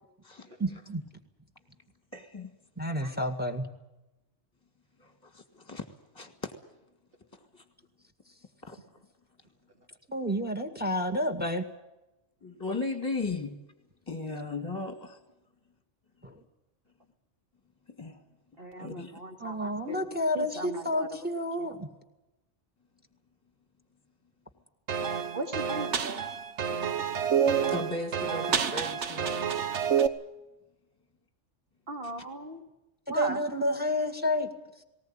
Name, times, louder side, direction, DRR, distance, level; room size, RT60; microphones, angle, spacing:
voice 1, 0.6-1.0 2.8-3.7 10.1-11.7 16.2-16.4 19.4-21.9 33.1-34.8, equal, 10° right, 7 dB, 1.8 m, -30 dB
voice 2, 2.1-2.5 3.0-3.2 5.0-5.9 6.1-6.5 7.6-7.7 8.6-8.8 12.4-13.6 14.1-15.2 17.9-18.2 18.8-19.2 27.2-27.3 27.7-29.4, left 3 dB, 20° left, 7 dB, 1.9 m, -36 dB
voice 3, 18.6-20.0 20.3-21.2 21.6-21.8 25.3-26.2 31.9-32.6 33.1-33.4, right 1 dB, 50° right, 4 dB, 2.9 m, -38 dB
sound 1, 24.9-30.1, right 7 dB, 65° right, 1.4 m, -28 dB
19.5 x 19.0 x 8.8 m, 0.98 s
omnidirectional pair, 1.3 m